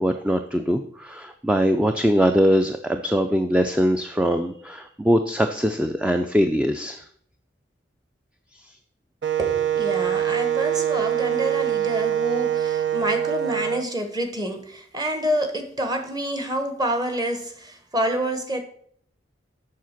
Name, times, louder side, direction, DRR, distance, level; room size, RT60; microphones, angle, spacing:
voice 1, 0.0-7.0, equal, 5° right, 0.4 m, -22 dB
Wind instrument woodwind instrument, 9.2-13.8, right 10 dB, 70° right, 0.7 m, -24 dB
voice 2, 9.4-18.6, equal, 20° right, 1.2 m, -27 dB
7.5 x 6.4 x 5.8 m
head